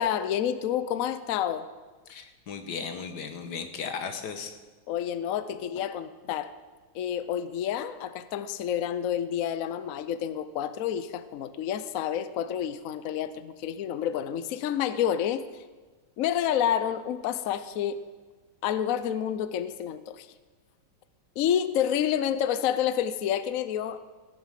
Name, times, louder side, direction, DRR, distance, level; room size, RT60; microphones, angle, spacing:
voice 1, 0.0-1.7 4.9-6.5 6.9-15.4 16.2-18.0 18.6-20.3 21.4-24.0, left 9 dB, 80° left, 13 dB, 0.7 m, -29 dB
voice 2, 2.1-4.5, left 6 dB, 55° left, 7 dB, 1.7 m, -36 dB
17.5 x 7.2 x 7.4 m, 1.3 s
omnidirectional pair, 2.2 m